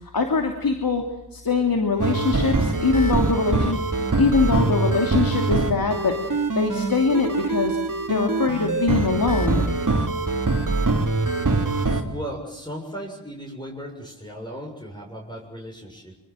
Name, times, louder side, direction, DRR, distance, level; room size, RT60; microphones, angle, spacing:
voice 1, 0.1-1.0 1.3-3.8 4.2-7.8 8.1-9.7, left 4 dB, 60° left, 3 dB, 2.9 m, -23 dB
sound 1, 2.0-12.0, right 3 dB, 50° right, 3.2 m, -23 dB
voice 2, 11.8-16.2, equal, 10° left, -1 dB, 7.0 m, -36 dB
25.5 x 25.0 x 7.7 m, 0.82 s
cardioid pair, 60°, 40 cm